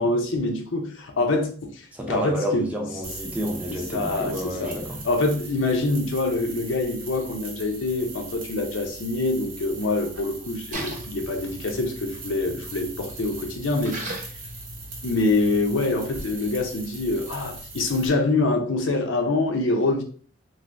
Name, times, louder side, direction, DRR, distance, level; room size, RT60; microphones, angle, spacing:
voice 1, 0.0-2.7 3.7-4.8 5.0-14.0 15.0-20.0, left 2 dB, 75° left, 0.6 m, -25 dB
voice 2, 1.9-5.0, equal, 5° right, 0.5 m, -30 dB
sound 1, 3.0-18.1, right 2 dB, 85° right, 0.8 m, -40 dB
Splash splatter, 10.7-15.8, right 1 dB, 40° right, 0.8 m, -39 dB
3.1 x 2.6 x 2.5 m
head